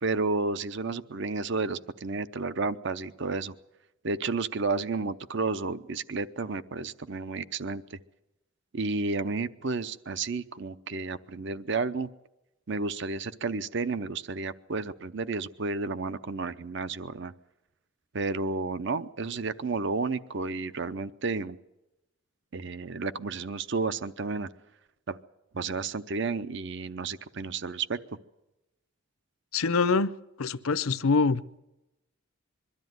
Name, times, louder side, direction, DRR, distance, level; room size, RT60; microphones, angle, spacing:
voice 1, 0.0-3.5 4.0-8.0 8.7-12.1 12.7-17.3 18.1-21.6 22.5-24.5 25.1-25.2 25.5-28.0, right 3 dB, 55° right, 0.7 m, -31 dB
voice 2, 29.5-30.1 30.4-31.6, left 4 dB, 80° left, 0.7 m, -25 dB
22.5 x 13.0 x 9.4 m
head